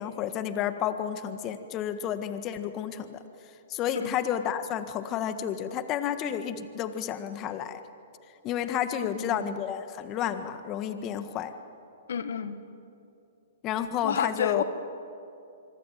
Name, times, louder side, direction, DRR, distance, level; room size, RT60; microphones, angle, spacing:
voice 1, 0.0-3.2 3.7-7.8 8.4-11.5 13.6-14.6, left 9 dB, 30° left, 10 dB, 1.5 m, -31 dB
voice 2, 9.0-9.4 12.1-12.6 14.0-14.6, left 7 dB, 75° left, 11 dB, 1.7 m, -30 dB
25.0 x 25.0 x 9.1 m, 2.6 s
hypercardioid pair, 130°, 0 cm